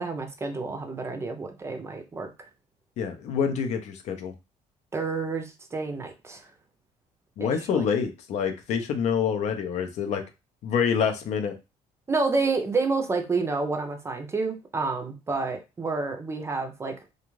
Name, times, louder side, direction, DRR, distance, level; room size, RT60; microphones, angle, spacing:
voice 1, 0.0-2.3 4.9-6.5 7.4-7.8 12.1-16.9, right 3 dB, 20° right, 5 dB, 0.5 m, -29 dB
voice 2, 3.0-4.3 7.4-10.2 10.6-11.6, left 7 dB, 60° left, 6 dB, 0.6 m, -26 dB
2.5 x 2.3 x 3.0 m, 0.26 s
cardioid pair, 125°, 13 cm